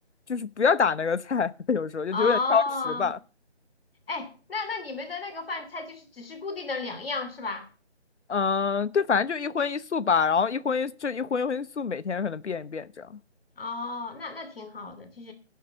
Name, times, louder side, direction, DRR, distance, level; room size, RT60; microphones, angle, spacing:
voice 1, 0.3-2.6 3.0-3.2 8.3-13.1, left 5 dB, 80° left, 0.8 m, -26 dB
voice 2, 2.1-3.1 4.1-7.6 13.6-15.3, left 3 dB, ahead, 0.9 m, -33 dB
11.5 x 5.7 x 7.8 m
figure-of-eight pair, 170°, 34 cm